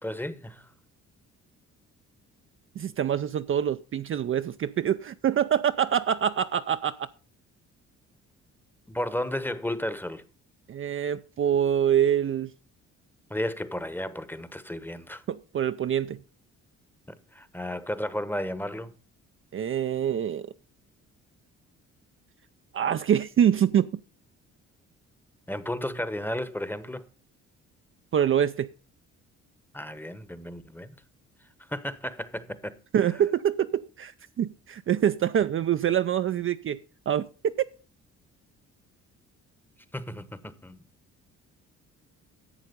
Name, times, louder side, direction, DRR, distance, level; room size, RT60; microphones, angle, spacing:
voice 1, 0.0-0.7 8.9-10.2 13.3-15.2 17.3-18.9 25.5-27.0 29.7-30.9 31.7-32.7 33.0-33.1 39.9-40.8, left 1 dB, 5° left, 1.0 m, -33 dB
voice 2, 2.8-7.1 10.7-12.5 15.3-16.2 19.5-20.5 22.7-23.9 28.1-28.7 32.9-36.8 37.1-37.5, right 9 dB, 45° right, 0.5 m, -25 dB
11.0 x 7.5 x 5.2 m
cardioid pair, 90°, 30 cm